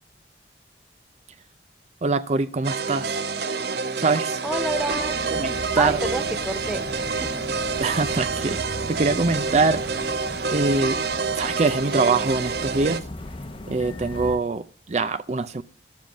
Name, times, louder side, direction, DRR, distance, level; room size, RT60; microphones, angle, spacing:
voice 1, 2.0-3.2 4.0-4.4 5.3-6.0 7.8-8.6 8.9-10.2 10.5-11.0 11.3-13.1 13.7-15.6, right 3 dB, 40° right, 0.5 m, -24 dB
sound 1, 2.6-13.0, right 4 dB, 65° right, 0.8 m, -28 dB
voice 2, 4.4-5.2 5.8-6.9 7.2-7.3, right 1 dB, 5° right, 0.7 m, -29 dB
sound 2, 4.5-14.4, left 1 dB, 30° left, 0.8 m, -38 dB
12.0 x 7.4 x 7.3 m
head